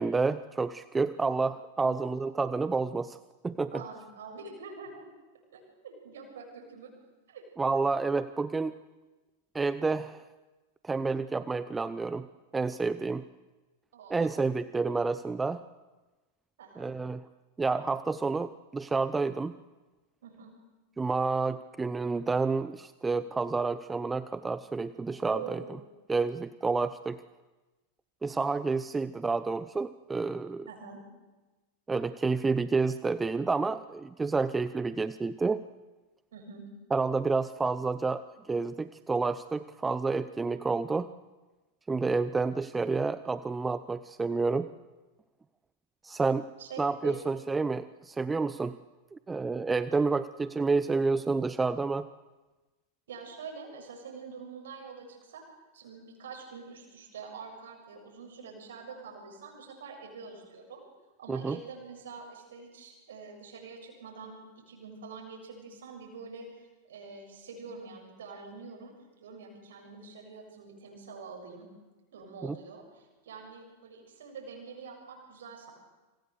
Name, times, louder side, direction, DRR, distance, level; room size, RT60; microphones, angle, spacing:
voice 1, 0.0-3.2 3.4-3.8 7.6-8.7 9.5-10.2 10.8-12.3 12.5-13.2 14.1-15.6 16.8-17.2 17.6-19.6 21.0-25.6 26.1-27.2 28.2-30.7 31.9-35.6 36.9-41.1 41.9-44.7 46.0-46.5 46.8-48.8 49.1-52.1 61.3-61.6 72.4-72.6, right 4 dB, 10° right, 14 dB, 0.8 m, -29 dB
voice 2, 1.8-2.2 3.7-5.1 5.5-6.9 7.3-7.4 13.9-14.3 16.6-16.9 20.2-20.5 25.3-25.7 30.7-31.0 36.3-36.7 46.6-47.2 53.1-55.4 55.7-60.8 61.2-68.9 69.2-71.7 72.1-75.7, right 5 dB, 60° right, 1 dB, 7.1 m, -45 dB
28.0 x 26.0 x 6.9 m, 1.2 s
figure-of-eight pair, 90°, 0 cm